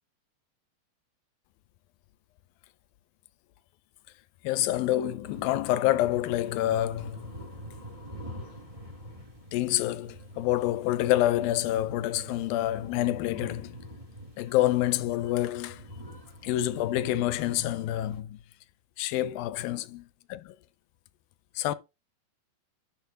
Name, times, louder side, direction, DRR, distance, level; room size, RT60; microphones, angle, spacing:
voice 1, 4.4-7.2 9.5-13.8 14.4-15.9 16.4-18.4 19.0-20.5 21.6-21.8, left 14 dB, 85° left, 2.4 m, -27 dB
sound 1, 5.2-18.2, equal, 20° right, 1.0 m, -45 dB
10.0 x 6.6 x 3.8 m
omnidirectional pair, 4.3 m